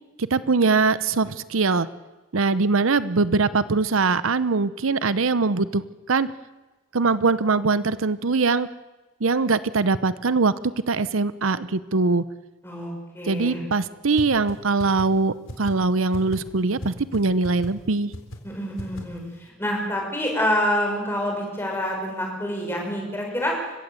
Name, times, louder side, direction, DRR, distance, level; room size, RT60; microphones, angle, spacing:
voice 1, 0.2-1.9 2.3-6.3 6.9-8.7 9.2-10.5 10.9-12.2 13.3-18.1, right 4 dB, 80° right, 15 dB, 0.8 m, -22 dB
voice 2, 12.6-13.6 18.4-23.6, equal, 10° left, 0 dB, 6.4 m, -27 dB
sound 1, 14.2-14.3 14.5-14.6 14.8-15.0 15.5-15.7 16.1-16.4 16.8-16.9 17.1-17.2 17.4-17.7 18.1-18.4 18.8-19.0, equal, 80° left, 3.7 m, -33 dB
29.0 x 16.0 x 8.2 m, 1.2 s
head